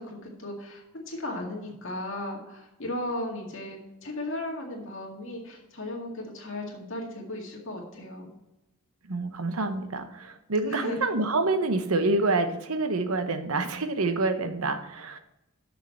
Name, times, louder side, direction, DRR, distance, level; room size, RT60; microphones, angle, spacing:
voice 1, 0.0-8.3 10.6-11.0, left 1 dB, 60° left, 0 dB, 2.1 m, -36 dB
voice 2, 9.1-15.2, right 2 dB, 75° right, 9 dB, 0.9 m, -27 dB
6.7 x 6.5 x 7.6 m, 0.90 s
head